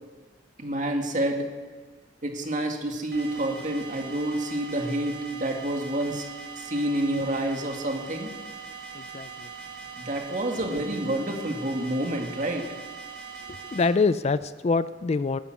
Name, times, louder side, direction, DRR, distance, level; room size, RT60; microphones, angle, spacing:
voice 1, 0.6-1.5 2.2-6.2 6.6-8.3 9.9-12.7, right 1 dB, 40° right, 3 dB, 2.2 m, -28 dB
sound 1, 3.1-13.9, right 5 dB, 60° right, 2.5 m, -41 dB
voice 2, 8.9-9.5 13.5-15.4, left 4 dB, 35° left, 15 dB, 0.4 m, -25 dB
19.0 x 11.0 x 6.2 m, 1.4 s
head